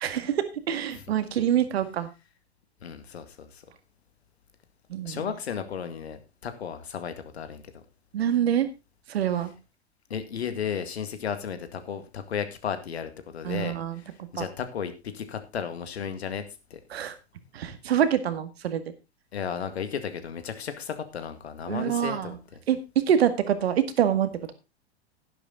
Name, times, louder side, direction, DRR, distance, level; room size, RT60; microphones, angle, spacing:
voice 1, 0.0-2.1 4.9-5.2 8.1-8.7 9.1-9.5 13.4-14.0 14.4-14.5 16.9-17.1 17.5-18.8 21.7-22.4 22.7-24.5, right 9 dB, 65° right, 10 dB, 2.0 m, -25 dB
voice 2, 2.8-3.6 5.0-7.8 9.4-9.5 10.1-16.4 16.7-16.8 19.3-22.6, left 7 dB, 70° left, 9 dB, 2.1 m, -34 dB
11.0 x 11.0 x 3.9 m, 0.27 s
figure-of-eight pair, 95°, 33 cm